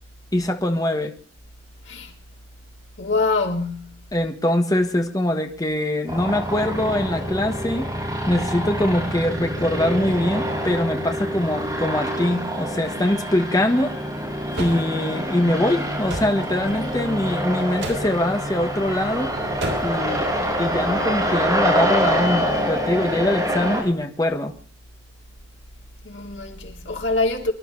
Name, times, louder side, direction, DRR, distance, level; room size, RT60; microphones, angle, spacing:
voice 1, 0.3-1.1 4.1-7.9 8.3-13.9 14.6-19.3 19.8-20.3 20.6-24.5, left 1 dB, 20° left, 1.5 m, -23 dB
voice 2, 3.0-4.1 16.6-17.1 26.0-27.5, left 3 dB, 75° left, 3.4 m, -25 dB
sound 1, 6.1-23.8, equal, 20° right, 6.0 m, -26 dB
sound 2, 14.5-14.9 16.1-16.4 17.8-18.1 19.6-20.0, right 1 dB, 80° right, 5.8 m, -30 dB
25.0 x 12.0 x 4.1 m
head